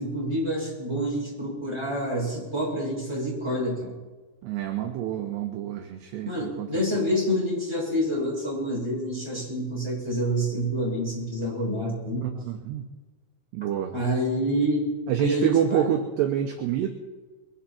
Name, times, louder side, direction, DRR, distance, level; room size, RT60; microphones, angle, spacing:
voice 1, 0.0-3.9 6.2-12.3 13.9-14.9 15.2-15.9, equal, 5° right, -4 dB, 6.2 m, -27 dB
voice 2, 4.4-6.7 12.2-12.9 13.5-13.9 15.1-16.9, right 10 dB, 75° right, 4 dB, 2.6 m, -27 dB
22.5 x 13.5 x 4.5 m, 1.3 s
omnidirectional pair, 5.9 m